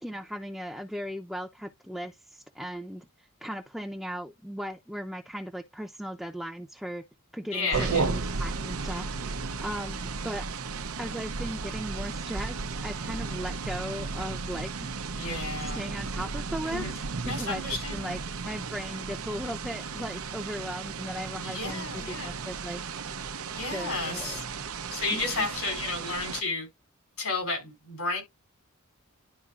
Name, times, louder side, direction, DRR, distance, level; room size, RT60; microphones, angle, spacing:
voice 1, 0.0-7.0 7.3-9.3 9.6-10.4 11.0-14.9 15.7-16.9 17.2-17.6 17.9-22.8 23.7-24.4 25.1-25.5, equal, ahead, 0.6 m, -37 dB
voice 2, 7.5-8.1 15.2-15.8 16.6-17.0 17.3-18.1 21.4-22.4 23.6-24.4 24.9-26.7 27.2-28.2, left 3 dB, 85° left, 4.1 m, -32 dB
sound 1, 7.7-26.4, right 4 dB, 80° right, 0.7 m, -34 dB
12.0 x 4.0 x 2.4 m
head